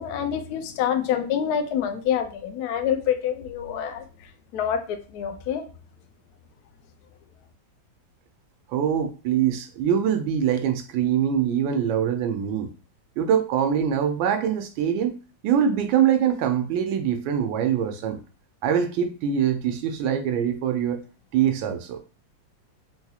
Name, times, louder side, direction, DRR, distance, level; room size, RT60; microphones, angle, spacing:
voice 1, 0.0-4.0 4.5-5.6, left 9 dB, 75° left, 6 dB, 0.9 m, -26 dB
voice 2, 8.7-12.7 13.2-15.1 15.4-18.2 18.6-21.0 21.3-22.0, right 8 dB, 90° right, 6 dB, 1.4 m, -23 dB
3.8 x 2.3 x 2.7 m, 0.35 s
omnidirectional pair, 2.1 m